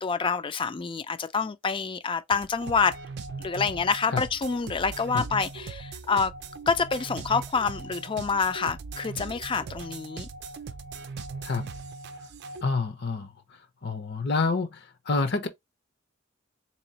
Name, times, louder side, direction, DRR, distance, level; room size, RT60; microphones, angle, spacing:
voice 1, 0.0-3.0 3.4-6.3 6.7-10.3, left 5 dB, 25° left, 0.4 m, -27 dB
sound 1, 2.3-12.6, right 4 dB, 60° right, 0.5 m, -39 dB
voice 2, 12.6-15.5, left 3 dB, 60° left, 0.8 m, -28 dB
3.9 x 3.0 x 2.8 m
head